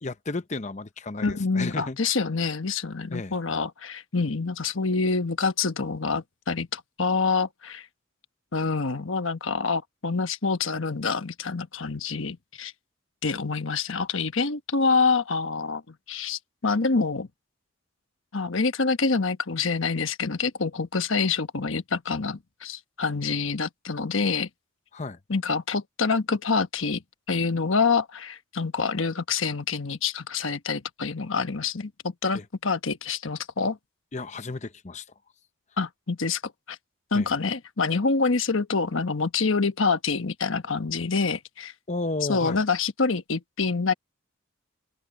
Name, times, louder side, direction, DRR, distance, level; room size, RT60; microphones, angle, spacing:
voice 1, 0.0-2.0 3.1-3.4 24.9-25.2 32.3-32.4 34.1-35.0 37.1-37.3 41.9-42.6, left 3 dB, 35° left, 0.7 m, -33 dB
voice 2, 1.2-7.9 8.5-12.7 13.2-17.3 18.3-24.5 25.3-27.0 27.3-33.8 35.8-36.4 36.7-36.8 37.1-41.7 42.3-43.9, left 4 dB, 70° left, 1.2 m, -26 dB
open air
head